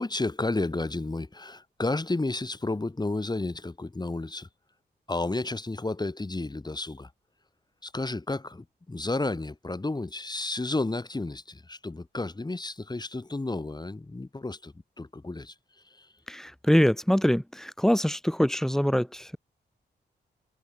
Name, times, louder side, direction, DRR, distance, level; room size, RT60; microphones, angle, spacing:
voice 1, 0.0-4.5 5.1-7.1 7.8-15.5 16.0-16.1, left 2 dB, 25° left, 6.6 m, -32 dB
voice 2, 16.3-19.4, equal, ahead, 4.7 m, -24 dB
cardioid pair, 80°, 18 cm